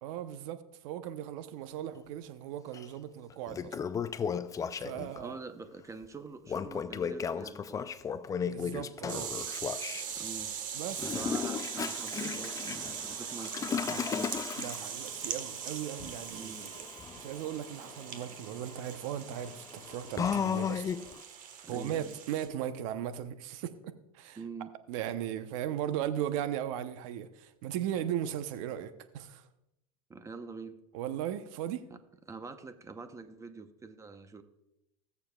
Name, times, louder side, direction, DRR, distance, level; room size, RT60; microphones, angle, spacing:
voice 1, 0.0-3.8 4.8-5.4 8.5-9.3 10.7-11.0 14.6-16.9 17.2-20.8 21.7-24.4 24.9-29.4 30.9-31.9, right 10 dB, 65° right, 0.8 m, -37 dB
Toilet flush, 2.7-2.9 3.3-5.2 6.5-10.0 10.9-21.2, left 7 dB, 20° left, 0.4 m, -36 dB
voice 2, 5.2-7.9 10.2-10.5 11.0-14.4 16.3-16.7 21.6-22.1 24.4-24.7 30.1-30.8 31.9-32.0 32.3-34.4, right 4 dB, 15° right, 0.8 m, -45 dB
sound 1, 9.1-22.5, right 8 dB, 45° right, 1.4 m, -41 dB
20.0 x 7.0 x 2.3 m
hypercardioid pair, 105°, 19 cm